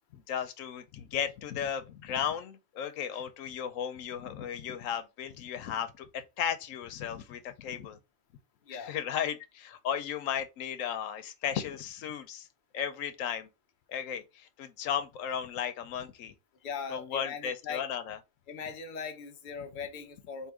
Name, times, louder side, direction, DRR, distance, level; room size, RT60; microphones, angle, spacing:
voice 1, 0.1-8.0 8.7-12.5 12.7-13.5 13.9-16.3 16.9-18.2, left 8 dB, 90° left, 1.0 m, -35 dB
voice 2, 16.6-17.8 18.5-20.5, left 6 dB, 45° left, 0.9 m, -39 dB
3.6 x 2.7 x 4.7 m
omnidirectional pair, 1.3 m